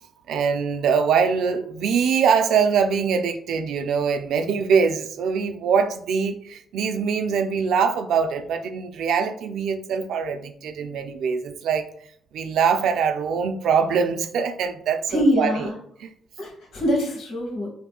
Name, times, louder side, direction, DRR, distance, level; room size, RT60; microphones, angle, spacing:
voice 1, 0.3-11.8 12.3-15.7 16.0-16.1, right 6 dB, 75° right, 7 dB, 0.4 m, -23 dB
voice 2, 15.1-15.8 16.4-17.7, equal, 75° left, -1 dB, 1.3 m, -24 dB
3.6 x 2.7 x 2.3 m, 0.63 s
cardioid pair, 90°, 0 cm